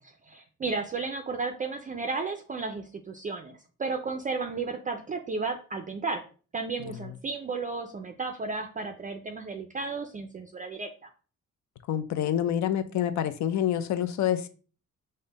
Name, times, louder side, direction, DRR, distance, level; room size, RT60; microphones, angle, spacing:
voice 1, 0.3-6.2 6.5-10.9, right 4 dB, 25° right, 0.3 m, -33 dB
voice 2, 11.9-14.5, left 10 dB, 70° left, 0.5 m, -27 dB
5.3 x 2.1 x 3.9 m
cardioid pair, 145°, 30 cm